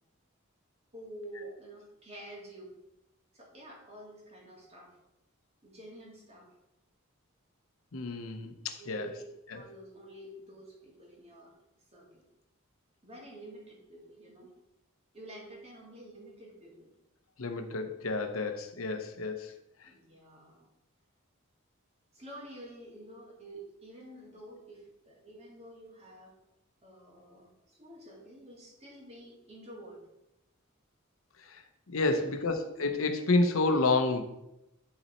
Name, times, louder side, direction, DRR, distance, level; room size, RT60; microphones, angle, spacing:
voice 1, 0.9-2.7 3.3-5.0 5.6-6.5 8.8-9.2 9.5-11.5 11.9-12.2 13.0-14.5 15.1-16.9 19.8-20.7 22.1-26.3 26.8-30.0 32.1-32.2, right 1 dB, 30° right, -2 dB, 2.1 m, -49 dB
voice 2, 7.9-9.1 9.5-9.6 17.4-19.5 19.8-19.9 31.4-31.6 31.9-34.2, left 3 dB, 75° left, 7 dB, 0.8 m, -30 dB
11.5 x 4.1 x 4.3 m, 0.90 s
head